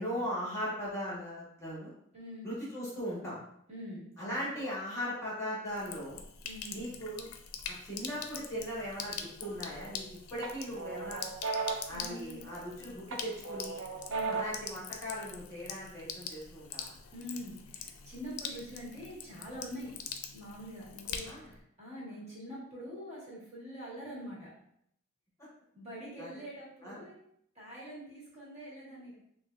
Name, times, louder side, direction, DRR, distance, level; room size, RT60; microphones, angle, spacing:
voice 1, 0.0-1.9 2.4-3.4 4.2-6.2 6.7-7.3 7.6-11.2 11.9-13.8 14.3-17.0 21.2-21.5 26.2-26.4 26.8-27.0, equal, 15° left, -7 dB, 1.1 m, -39 dB
voice 2, 2.1-2.5 3.7-4.4 6.4-6.8 11.9-12.4 14.1-14.4 17.1-19.9 20.3-21.5 21.8-24.5 25.7-27.1 27.5-29.2, equal, 30° right, -6 dB, 1.4 m, -44 dB
Sink (filling or washing), 5.7-21.6, left 7 dB, 90° left, 0.4 m, -44 dB
sound 1, 9.4-10.0 10.4-12.7 13.1-14.7, right 4 dB, 65° right, 0.5 m, -37 dB
5.9 x 2.2 x 2.3 m, 0.70 s
head